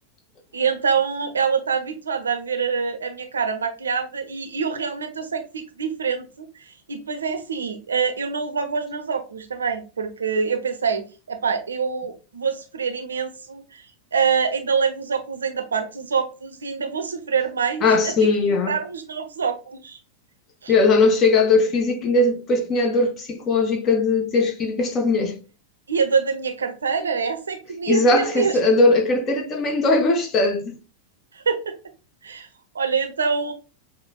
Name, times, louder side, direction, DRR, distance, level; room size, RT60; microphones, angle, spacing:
voice 1, 0.5-6.3 6.9-13.8 14.1-17.8 18.7-20.0 20.6-20.7 25.9-28.6 31.3-31.8 32.2-32.5 32.7-33.5, right 6 dB, 70° right, 0.6 m, -25 dB
voice 2, 17.8-18.8 20.7-25.4 27.9-30.8, left 3 dB, 30° left, 0.8 m, -19 dB
6.0 x 2.1 x 2.2 m
figure-of-eight pair, 90°, 0 cm